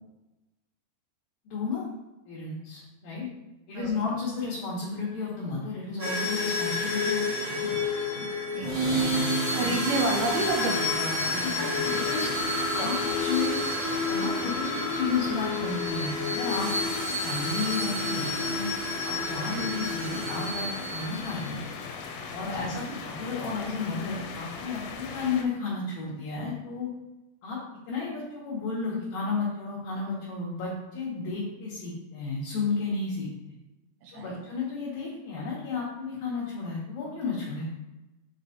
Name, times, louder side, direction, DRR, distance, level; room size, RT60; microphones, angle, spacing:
voice 1, 1.5-1.8 2.3-3.3 3.7-7.8 8.1-8.3 9.5-9.7 11.4-12.3 12.7-13.7 14.0-16.7 17.1-18.7 19.0-21.6 22.3-26.9 27.4-27.6 27.9-33.6 34.1-37.7, left 4 dB, 65° left, -7 dB, 2.6 m, -33 dB
sound 1, 6.0-21.6, left 2 dB, 55° right, 1.3 m, -29 dB
voice 2, 8.5-11.8 12.8-12.9 22.6-22.9 34.0-34.4, right 2 dB, 85° right, 0 dB, 3.4 m, -31 dB
sound 2, 10.4-25.5, left 5 dB, 85° left, 3.0 m, -40 dB
7.5 x 3.2 x 3.9 m, 1.0 s
omnidirectional pair, 5.2 m